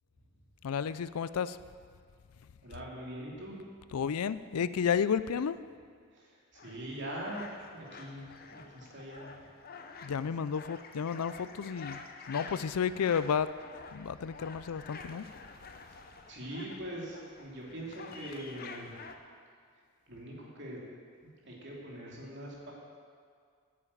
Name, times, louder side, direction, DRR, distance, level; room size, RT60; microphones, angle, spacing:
voice 1, 0.6-1.6 3.9-5.6 10.0-12.0 12.3-13.5 13.9-15.3, left 7 dB, 85° left, 15 dB, 0.4 m, -32 dB
voice 2, 2.6-3.6 6.1-7.4 7.7-9.3 15.9-16.0 16.3-19.0 20.1-20.8 21.2-22.7, right 1 dB, 50° right, -3 dB, 2.9 m, -43 dB
sound 1, 6.5-19.2, left 4 dB, 45° left, 0.8 m, -49 dB
10.5 x 8.6 x 8.5 m, 2.1 s
head